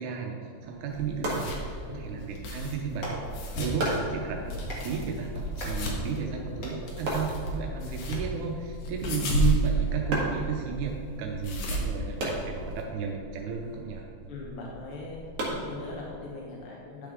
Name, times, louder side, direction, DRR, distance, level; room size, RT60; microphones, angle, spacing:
voice 1, 0.0-3.2 3.6-14.1, right 6 dB, 85° right, 1 dB, 2.2 m, -33 dB
sound 1, 0.5-16.4, right 1 dB, 55° right, 2.5 m, -38 dB
sound 2, 0.9-12.8, equal, 80° left, 2.7 m, -33 dB
Clapping, 2.9-8.2, equal, 35° left, 1.7 m, -44 dB
voice 2, 3.5-4.7 5.8-6.5 7.3-7.5 9.0-9.4 10.0-10.1 14.3-15.2 15.5-17.1, left 3 dB, 60° left, -3 dB, 1.5 m, -42 dB
10.0 x 6.8 x 3.6 m, 2.5 s
omnidirectional pair, 3.4 m